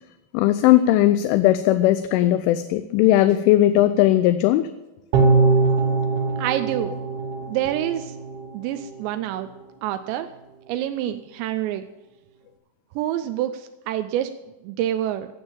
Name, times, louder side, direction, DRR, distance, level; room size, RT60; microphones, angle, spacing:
voice 1, 0.3-4.7, left 14 dB, 80° left, 10 dB, 3.0 m, -18 dB
sound 1, 5.1-8.5 8.8-8.9, right 3 dB, 65° right, 2.8 m, -21 dB
voice 2, 6.4-7.0 7.5-8.2 8.5-9.5 9.8-10.3 10.7-11.8 13.0-14.3 14.6-15.3, right 12 dB, 85° right, 9 dB, 2.5 m, -27 dB
18.0 x 7.2 x 7.2 m, 1.0 s
omnidirectional pair, 5.7 m